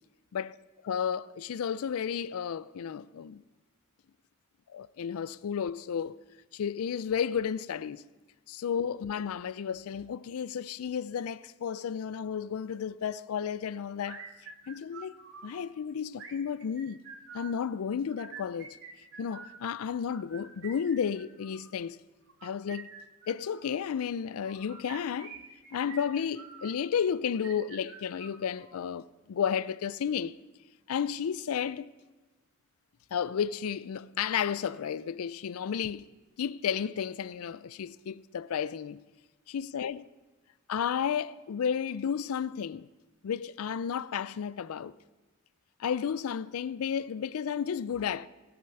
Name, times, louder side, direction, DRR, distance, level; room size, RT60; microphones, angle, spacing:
voice 1, 0.9-3.4 4.7-6.2 6.5-8.0 8.5-14.2 14.7-15.2 15.4-17.0 17.3-18.8 19.2-22.0 22.4-22.9 23.3-25.4 25.7-30.3 30.9-31.9 33.1-36.1 36.4-39.0 39.5-40.0 40.7-42.9 43.2-44.9 45.8-48.3, left 7 dB, 90° left, 0.4 m, -32 dB
sound 1, 14.0-15.6 16.1-17.6 18.1-19.6 20.1-21.7 22.3-23.7 24.4-26.8 27.3-28.8, right 5 dB, 60° right, 2.2 m, -48 dB
17.0 x 8.8 x 6.9 m
head